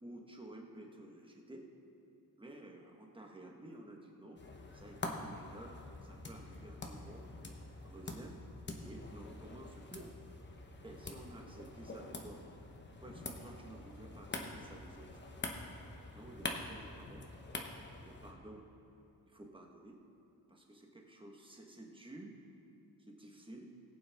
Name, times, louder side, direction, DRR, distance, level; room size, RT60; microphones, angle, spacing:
voice 1, 0.0-1.7 2.4-4.4 4.7-7.3 7.8-8.4 8.8-10.1 10.8-12.4 13.0-15.1 16.1-17.3 18.1-18.6 19.3-20.0 20.5-22.4 23.1-23.7, right 1 dB, 15° right, 0 dB, 1.2 m, -52 dB
sound 1, 4.4-18.3, left 2 dB, 30° left, 0.9 m, -46 dB
20.5 x 8.7 x 3.5 m, 2.9 s
wide cardioid pair, 170°, 39 cm